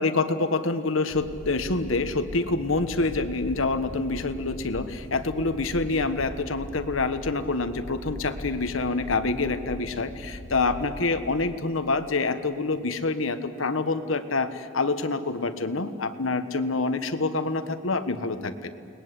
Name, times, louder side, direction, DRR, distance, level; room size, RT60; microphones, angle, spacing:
voice 1, 0.0-18.7, left 3 dB, 85° left, 10 dB, 1.3 m, -27 dB
sound 1, 1.1-11.0, equal, 65° right, 6.3 m, -40 dB
29.5 x 20.5 x 8.2 m, 2.3 s
head